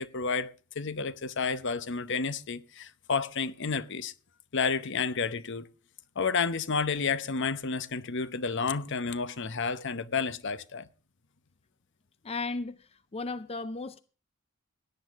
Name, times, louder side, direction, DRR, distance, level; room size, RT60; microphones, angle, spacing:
voice 1, 0.0-4.1 4.5-5.7 6.2-10.9, left 5 dB, 60° left, 0.8 m, -31 dB
voice 2, 12.2-14.0, left 3 dB, 30° left, 0.5 m, -35 dB
17.0 x 10.0 x 3.6 m
head